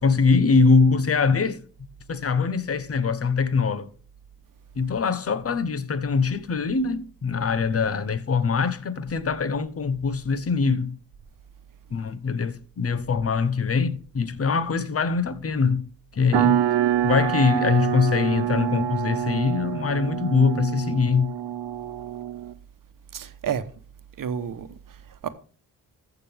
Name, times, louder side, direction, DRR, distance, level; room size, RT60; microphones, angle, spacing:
voice 1, 0.0-1.6 2.1-3.9 4.8-11.0 11.9-15.9 16.1-16.6 17.0-21.3, left 5 dB, 40° left, 1.0 m, -23 dB
sound 1, 16.3-22.5, right 12 dB, 85° right, 0.8 m, -26 dB
voice 2, 23.1-23.7 24.2-25.3, right 8 dB, 55° right, 1.1 m, -31 dB
14.5 x 6.0 x 3.5 m
cardioid pair, 90°, 38 cm